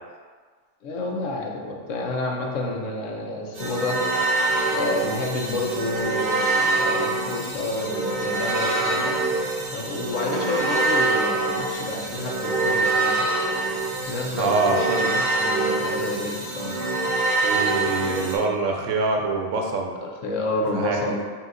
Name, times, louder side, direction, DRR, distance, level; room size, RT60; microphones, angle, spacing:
voice 1, 0.8-4.1 4.7-9.2 9.7-13.3 14.1-16.9 20.0-21.2, left 2 dB, 75° left, 0 dB, 1.0 m, -29 dB
sound 1, 3.5-18.4, right 3 dB, 50° right, 0.9 m, -25 dB
voice 2, 14.4-14.8 17.4-20.0 20.7-21.2, right 3 dB, 75° right, 1 dB, 0.9 m, -25 dB
5.6 x 2.8 x 2.5 m, 1.6 s
omnidirectional pair, 1.3 m